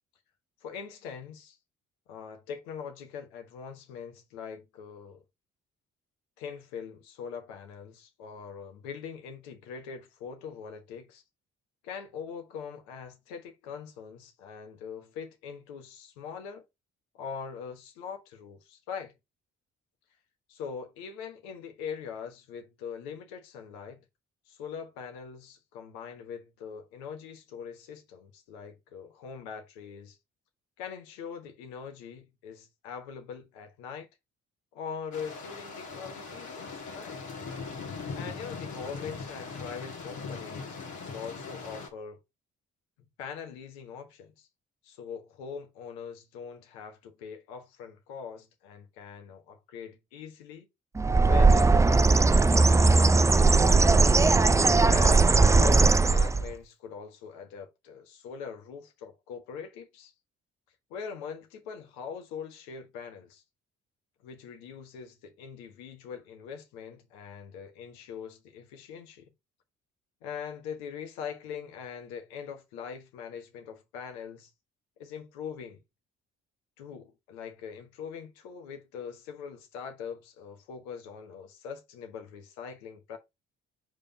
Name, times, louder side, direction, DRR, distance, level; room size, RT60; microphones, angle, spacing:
voice 1, 0.6-1.6 2.1-5.2 6.4-11.2 11.8-16.6 17.1-19.1 20.5-24.0 24.5-30.2 30.8-34.1 34.7-37.2 38.1-42.2 43.2-44.5 44.8-50.7 51.2-53.1 53.5-54.1 54.8-60.1 60.9-63.4 64.2-69.3 70.2-74.5 75.0-75.8 76.8-83.2, left 6 dB, 85° left, 1.3 m, -42 dB
sound 1, 35.1-41.9, left 4 dB, 65° left, 1.6 m, -40 dB
Bird, 51.0-56.5, right 3 dB, 10° right, 0.3 m, -19 dB
5.2 x 3.6 x 5.5 m
hypercardioid pair, 50°, 32 cm